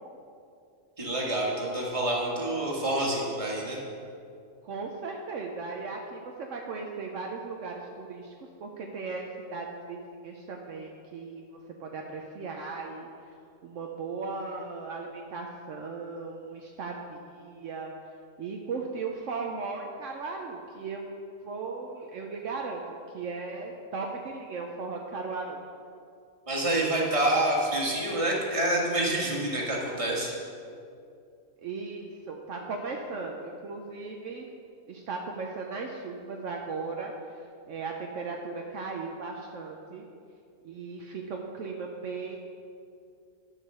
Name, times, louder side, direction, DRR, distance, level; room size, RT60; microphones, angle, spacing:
voice 1, 1.0-3.8 26.5-30.3, right 1 dB, 25° right, -3 dB, 1.7 m, -27 dB
voice 2, 4.6-8.3 8.6-13.1 13.6-17.9 18.4-21.1 21.4-25.6 31.6-34.5 34.9-37.1 37.7-40.0 40.6-42.4, right 4 dB, 70° right, 1 dB, 1.0 m, -37 dB
11.0 x 5.0 x 6.8 m, 2.5 s
omnidirectional pair, 1.4 m